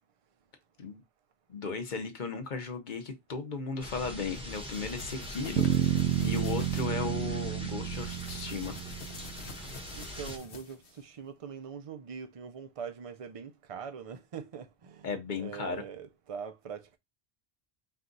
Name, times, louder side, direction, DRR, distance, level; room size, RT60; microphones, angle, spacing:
voice 1, 1.5-8.7 15.0-15.8, left 4 dB, 50° left, 0.9 m, -36 dB
sound 1, 3.8-10.4, left 1 dB, 5° right, 0.8 m, -43 dB
sound 2, 4.4-6.9 7.9-11.0, left 5 dB, 85° left, 1.1 m, -48 dB
sound 3, 5.6-9.6, right 10 dB, 75° right, 0.8 m, -30 dB
voice 2, 9.9-17.0, right 6 dB, 40° right, 0.5 m, -43 dB
4.5 x 2.3 x 3.9 m
omnidirectional pair, 1.1 m